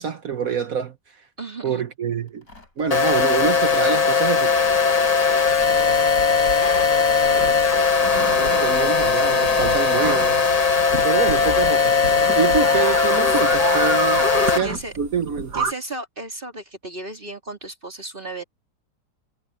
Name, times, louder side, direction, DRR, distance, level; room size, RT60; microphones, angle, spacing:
voice 1, 0.0-1.2 1.6-2.4 2.8-4.5 8.4-10.5 11.0-11.9 12.3-14.2 14.5-15.6, right 7 dB, 60° right, 1.4 m, -26 dB
voice 2, 1.4-1.8 14.2-14.9 15.5-18.4, right 2 dB, 30° right, 3.8 m, -34 dB
Tearing, 2.3-4.1 4.6-6.0 7.1-7.6 8.1-9.7 11.0-11.9, left 2 dB, 55° left, 6.2 m, -42 dB
sound 1, 2.9-14.6, left 5 dB, 30° left, 0.8 m, -19 dB
sound 2, 5.5-15.7, right 4 dB, 85° right, 6.4 m, -30 dB
omnidirectional pair, 1.8 m